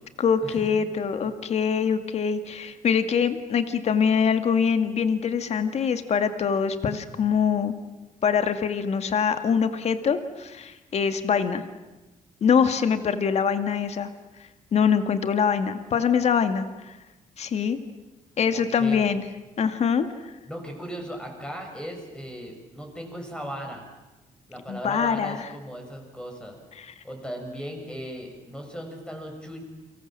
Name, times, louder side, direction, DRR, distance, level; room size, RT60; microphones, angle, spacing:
voice 1, 0.2-7.7 8.2-11.6 12.4-14.1 14.7-16.7 17.4-17.8 18.4-19.2 19.6-20.1 24.7-25.5 26.8-26.9, left 6 dB, 50° left, 9 dB, 2.1 m, -24 dB
voice 2, 18.5-19.1 20.5-23.8 24.5-26.6 27.0-29.6, equal, 5° left, 3 dB, 6.8 m, -37 dB
30.0 x 25.0 x 7.6 m, 1.1 s
cardioid pair, 135°, 14 cm